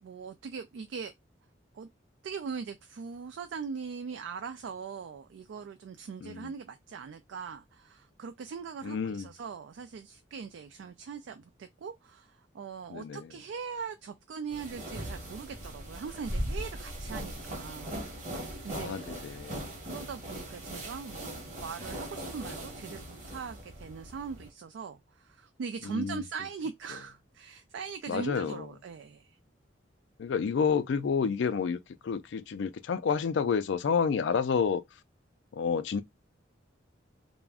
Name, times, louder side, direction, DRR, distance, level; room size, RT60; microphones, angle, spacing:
voice 1, 0.0-1.1 1.7-1.9 2.2-18.0 18.6-19.1 19.8-29.4, right 5 dB, 70° right, 0.3 m, -41 dB
voice 2, 8.8-9.3 12.9-13.3 18.7-19.6 25.8-26.2 28.1-28.7 30.2-34.8 35.5-36.0, left 6 dB, 65° left, 0.3 m, -29 dB
sound 1, 14.5-24.5, right 1 dB, 40° right, 0.9 m, -39 dB
2.4 x 2.1 x 3.4 m
head